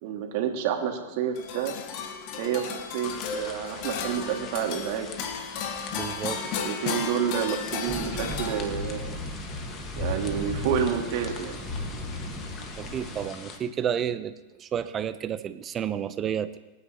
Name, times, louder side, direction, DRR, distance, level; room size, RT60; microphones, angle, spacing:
voice 1, 0.0-1.7 2.4-5.1 6.6-9.1 10.0-11.6, right 8 dB, 60° right, 2 dB, 2.3 m, -29 dB
sound 1, 1.3-9.0, left 6 dB, 55° left, 1.6 m, -34 dB
sound 2, 3.0-13.6, left 5 dB, 35° left, 1.8 m, -44 dB
voice 2, 5.9-6.4 12.8-16.6, right 9 dB, 30° right, 12 dB, 0.9 m, -31 dB
sound 3, 7.9-13.3, left 1 dB, 5° right, 5.2 m, -35 dB
25.5 x 9.7 x 3.1 m, 1.1 s
hypercardioid pair, 100°, 0 cm